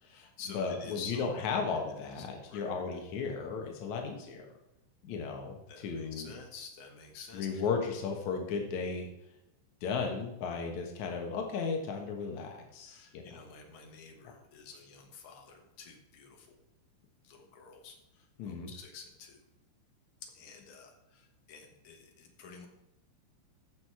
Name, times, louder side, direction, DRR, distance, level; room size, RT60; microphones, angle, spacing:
voice 1, 0.0-1.5 1.8-2.7 5.7-7.7 12.8-16.6 17.2-19.4 20.3-22.7, left 5 dB, 65° left, 3 dB, 1.9 m, -50 dB
voice 2, 0.5-4.4 5.0-5.6 5.8-6.3 7.3-9.1 9.8-13.3 18.4-18.7, left 5 dB, 85° left, 2 dB, 1.6 m, -35 dB
15.0 x 6.5 x 4.8 m, 0.88 s
omnidirectional pair, 5.6 m